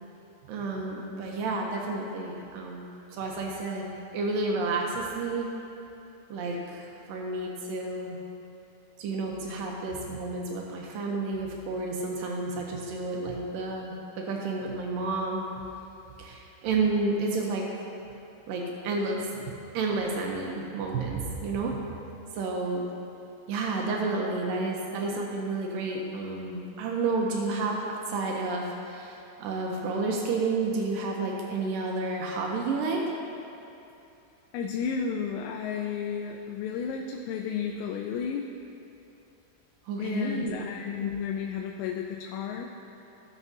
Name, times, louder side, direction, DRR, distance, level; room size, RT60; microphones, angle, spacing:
voice 1, 0.5-3.8 4.1-5.5 6.3-8.2 9.0-15.6 16.2-17.7 18.5-21.8 22.3-22.9 23.5-33.0 39.9-40.6, right 3 dB, 90° right, -1 dB, 1.9 m, -31 dB
voice 2, 34.5-38.5 40.0-42.7, left 7 dB, 90° left, 1 dB, 2.8 m, -32 dB
17.0 x 6.2 x 2.7 m, 2.8 s
omnidirectional pair, 4.9 m